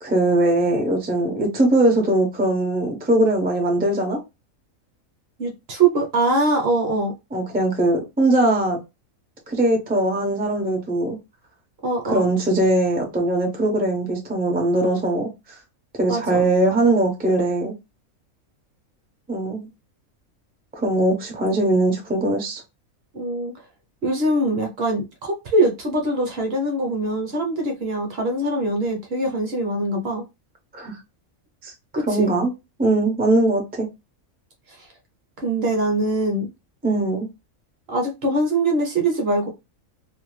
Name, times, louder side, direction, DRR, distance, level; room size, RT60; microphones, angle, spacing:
voice 1, 0.0-4.2 7.3-8.8 9.5-11.2 12.1-15.6 15.9-17.7 19.3-19.7 20.7-22.6 30.7-30.9 31.6-31.7 32.1-32.5 32.8-33.9 36.8-37.3, right 1 dB, 15° right, 0.3 m, -21 dB
voice 2, 5.4-7.1 11.8-12.3 16.1-16.4 23.1-23.5 24.0-30.2 31.9-32.3 34.8-34.9 35.4-36.5 37.9-39.5, right 2 dB, 55° right, 0.9 m, -23 dB
2.6 x 2.2 x 3.0 m
omnidirectional pair, 1.5 m